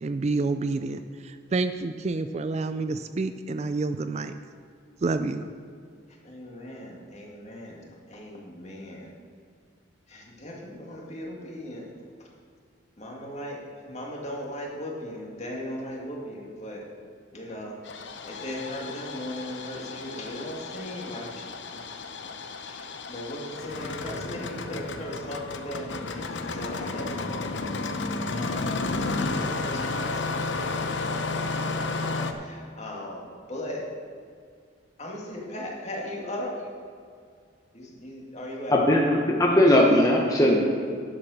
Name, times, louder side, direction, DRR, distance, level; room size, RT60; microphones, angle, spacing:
voice 1, 0.0-4.3 5.0-5.5, right 3 dB, 35° right, 10 dB, 0.3 m, -28 dB
voice 2, 6.2-9.1 10.1-11.8 13.0-16.8 17.3-17.8 18.2-21.4 22.6-26.2 26.5-27.5 28.3-28.9 29.3-33.2 33.5-33.8 35.0-36.5 37.7-39.0, equal, 35° left, -2 dB, 2.1 m, -38 dB
Engine starting, 17.8-32.3, left 3 dB, 65° left, 0.7 m, -32 dB
voice 3, 38.7-40.6, left 1 dB, 20° left, -2 dB, 1.0 m, -19 dB
11.0 x 7.3 x 6.4 m, 2.2 s
head